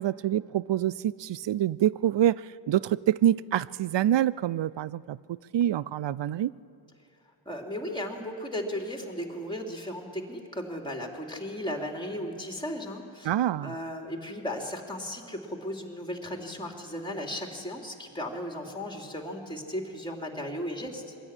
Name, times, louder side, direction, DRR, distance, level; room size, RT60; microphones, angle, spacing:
voice 1, 0.0-6.5 13.2-13.7, right 11 dB, 60° right, 20 dB, 0.5 m, -26 dB
voice 2, 7.4-13.3 13.6-21.0, left 1 dB, 10° left, 2 dB, 3.0 m, -36 dB
22.5 x 13.5 x 9.9 m, 2.6 s
cardioid pair, 65°, 49 cm